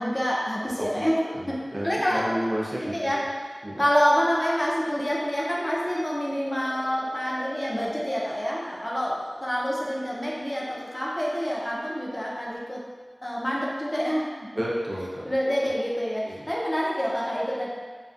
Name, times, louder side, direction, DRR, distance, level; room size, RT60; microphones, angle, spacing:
voice 1, 0.0-1.5 1.8-2.2 2.8-3.2 3.5-12.8 13.2-14.3 15.2-17.7, equal, 30° left, -5 dB, 0.5 m, -27 dB
voice 2, 1.3-3.2 3.6-3.8 14.5-15.5 16.2-16.4, equal, 70° right, -6 dB, 0.5 m, -32 dB
sound 1, 3.4-10.9, equal, 40° right, 0.8 m, -44 dB
2.5 x 2.2 x 2.3 m, 1.5 s
wide cardioid pair, 40°, 0 cm